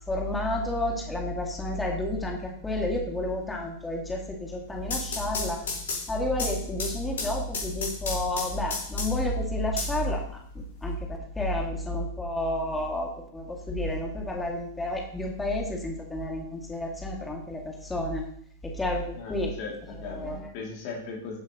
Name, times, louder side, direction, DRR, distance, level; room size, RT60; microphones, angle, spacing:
voice 1, 0.1-5.6 6.1-18.2 18.6-19.5 20.0-20.4, left 1 dB, 10° left, -1 dB, 2.5 m, -30 dB
sound 1, 4.6-9.3 9.8-10.7, left 4 dB, 70° left, 4.8 m, -34 dB
voice 2, 19.2-21.4, left 4 dB, 50° left, -2 dB, 3.0 m, -38 dB
15.0 x 8.3 x 3.2 m, 0.67 s
figure-of-eight pair, 95°, 0 cm